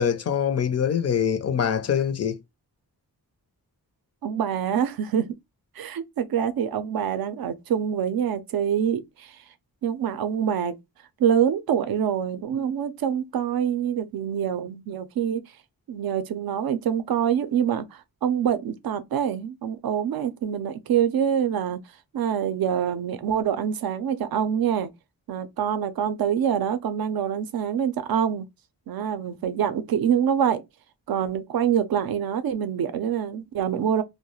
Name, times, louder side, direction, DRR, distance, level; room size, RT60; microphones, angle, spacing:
voice 1, 0.0-2.4, left 8 dB, 40° left, 0.4 m, -24 dB
voice 2, 4.2-5.3 5.8-9.4 9.8-10.8 11.2-15.4 15.9-21.8 22.1-24.9 25.3-28.5 28.9-30.6 31.1-34.0, right 8 dB, 65° right, 0.5 m, -25 dB
2.3 x 2.1 x 2.9 m
wide cardioid pair, 90°, 39 cm